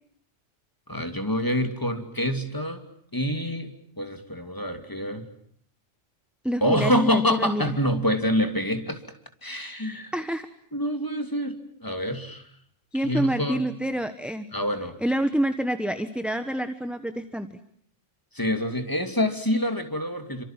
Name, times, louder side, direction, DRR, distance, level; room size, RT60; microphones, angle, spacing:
voice 1, 0.9-2.8 3.1-3.7 4.0-5.3 6.6-9.0 9.4-10.1 10.7-12.5 12.9-13.7 14.5-15.0 18.3-20.4, equal, 15° left, 7 dB, 2.8 m, -26 dB
voice 2, 6.4-7.6 10.1-10.5 12.9-14.5 15.0-17.5, right 1 dB, ahead, 10 dB, 1.2 m, -27 dB
29.0 x 26.0 x 7.5 m, 0.65 s
omnidirectional pair, 1.3 m